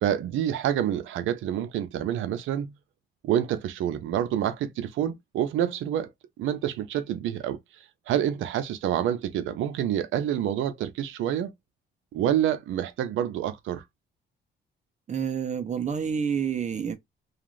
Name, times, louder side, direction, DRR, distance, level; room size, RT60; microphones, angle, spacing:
voice 1, 0.0-2.7 3.2-6.1 6.4-7.6 8.1-11.5 12.1-13.8, right 10 dB, 80° right, 0.6 m, -27 dB
voice 2, 15.1-17.0, right 7 dB, 35° right, 0.6 m, -28 dB
2.4 x 2.4 x 3.0 m
cardioid pair, 90°, 20 cm